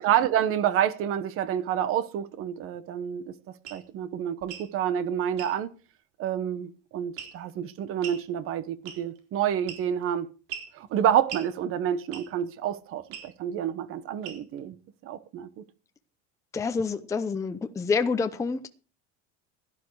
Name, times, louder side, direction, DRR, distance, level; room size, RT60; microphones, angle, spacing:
voice 1, 0.0-3.2 3.7-5.7 6.2-10.3 10.7-14.8 15.0-15.6, right 10 dB, 45° right, 1.1 m, -28 dB
sound 1, 3.6-3.8 4.4-4.7 5.4-5.6 7.2-7.5 8.0-8.2 8.9-9.2 9.7-10.0 10.5-10.7 11.3-11.5 12.1-12.4 13.1-13.3 14.2-14.6, right 9 dB, 90° right, 4.2 m, -40 dB
voice 2, 16.5-18.7, left 4 dB, 10° left, 0.6 m, -27 dB
16.5 x 11.5 x 4.8 m
cardioid pair, 170°, 31 cm